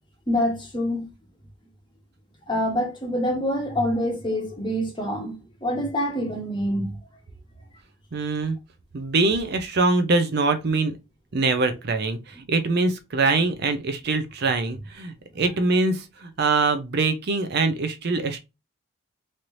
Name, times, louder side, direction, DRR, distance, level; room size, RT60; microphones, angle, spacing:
voice 1, 0.3-1.1 2.5-5.4 5.6-6.9, equal, 20° left, 0.9 m, -26 dB
voice 2, 8.1-8.6 8.9-11.0 11.3-18.4, right 3 dB, 50° right, 0.5 m, -23 dB
3.2 x 2.9 x 2.5 m
head